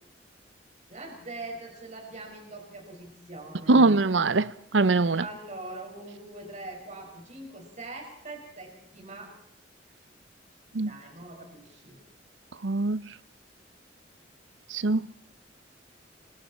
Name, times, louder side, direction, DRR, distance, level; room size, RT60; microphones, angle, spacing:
voice 1, 0.9-3.9 5.2-9.3 10.8-12.0, right 2 dB, 40° right, 5.8 m, -42 dB
voice 2, 3.7-5.2 10.7-10.9 12.6-13.0 14.7-15.1, right 3 dB, 85° right, 0.8 m, -22 dB
27.5 x 24.5 x 4.4 m
head